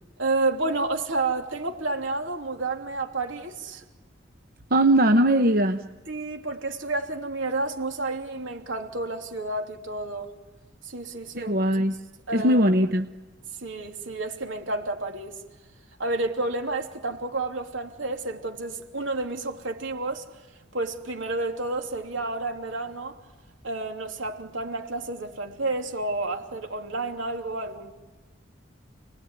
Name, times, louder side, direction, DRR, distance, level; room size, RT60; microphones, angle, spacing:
voice 1, 0.2-3.8 6.1-10.3 10.8-11.6 12.3-12.6 13.6-15.4 16.0-20.3 20.7-23.2 23.6-27.9, right 2 dB, 80° right, 3.1 m, -30 dB
voice 2, 4.7-5.8 11.4-11.9 12.3-13.0, right 1 dB, 50° right, 0.9 m, -20 dB
29.5 x 20.0 x 9.8 m
head